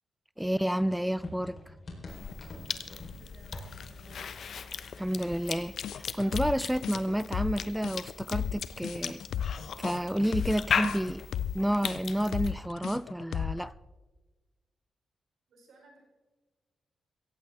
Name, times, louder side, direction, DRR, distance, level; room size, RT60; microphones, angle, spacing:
voice 1, 0.4-1.6 5.0-9.2 9.8-11.2 11.5-13.7, equal, 5° right, 0.3 m, -30 dB
sound 1, 0.6-6.1 6.4-7.9, left 2 dB, 50° left, 4.1 m, -48 dB
Cough / Chewing mastication, 2.1-12.5, left 6 dB, 65° left, 0.9 m, -37 dB
voice 2, 3.1-4.3 15.5-16.0, right 2 dB, 80° right, 4.6 m, -58 dB
sound 2, 5.8-13.7, left 9 dB, 85° left, 0.4 m, -34 dB
17.0 x 15.0 x 3.6 m
cardioid pair, 80°, 0 cm